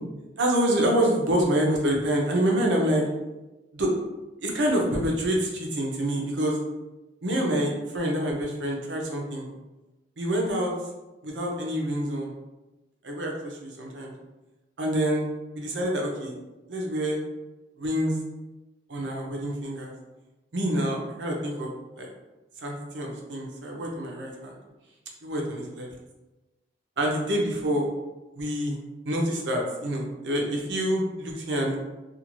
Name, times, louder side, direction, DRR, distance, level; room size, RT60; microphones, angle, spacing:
voice 1, 0.4-3.0 3.7-3.9 4.4-6.6 7.2-9.5 10.2-10.7 11.2-12.3 13.0-14.1 14.8-15.3 15.5-16.3 16.7-17.2 17.8-18.2 18.9-19.9 20.5-21.7 22.0-22.1 22.6-24.5 25.2-25.9 27.0-27.9 28.4-28.8 29.0-31.8, right 1 dB, 80° right, 0 dB, 0.6 m, -26 dB
2.5 x 2.4 x 3.0 m, 1.1 s
head